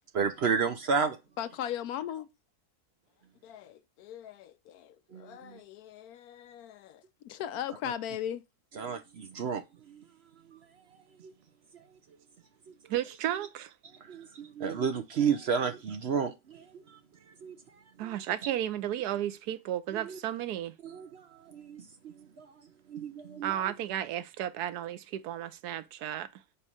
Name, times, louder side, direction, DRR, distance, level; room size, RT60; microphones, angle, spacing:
voice 1, 0.1-1.2 5.1-5.6 8.7-10.0 10.5-11.3 11.7-12.0 12.7-12.8 13.9-17.0 17.3-17.6 18.0-18.2 19.9-20.2 20.8-22.6 22.9-23.6, right 6 dB, 60° right, 0.7 m, -33 dB
voice 2, 1.4-2.3 3.4-8.4, left 10 dB, 75° left, 1.1 m, -38 dB
voice 3, 12.9-13.7 18.0-20.7 23.4-26.3, right 11 dB, 85° right, 1.2 m, -33 dB
4.5 x 4.3 x 5.0 m
omnidirectional pair, 1.6 m